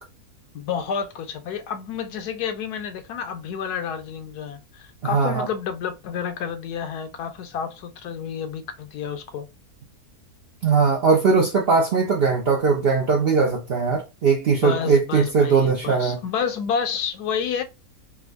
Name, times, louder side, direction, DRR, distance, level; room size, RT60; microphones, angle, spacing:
voice 1, 0.5-9.5 14.6-17.6, left 7 dB, 85° left, 1.2 m, -30 dB
voice 2, 5.0-5.5 10.6-16.2, right 5 dB, 65° right, 0.6 m, -20 dB
3.4 x 2.1 x 3.3 m
omnidirectional pair, 1.6 m